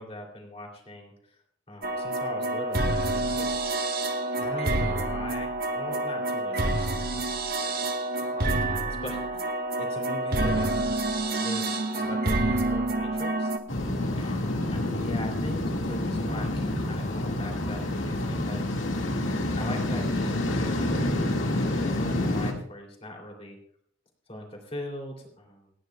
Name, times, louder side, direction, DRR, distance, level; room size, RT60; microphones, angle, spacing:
voice 1, 0.0-1.4 1.7-3.7 4.4-7.7 8.3-10.9 11.3-13.5 14.2-14.6 14.9-18.7 19.6-21.5 21.8-23.6 24.3-25.6, left 1 dB, 30° left, 1 dB, 3.0 m, -41 dB
sound 1, 1.8-13.6, right 2 dB, 50° right, 1.3 m, -28 dB
sound 2, 13.7-22.5, left 1 dB, 90° left, 2.0 m, -28 dB
28.0 x 10.5 x 2.3 m, 0.63 s
head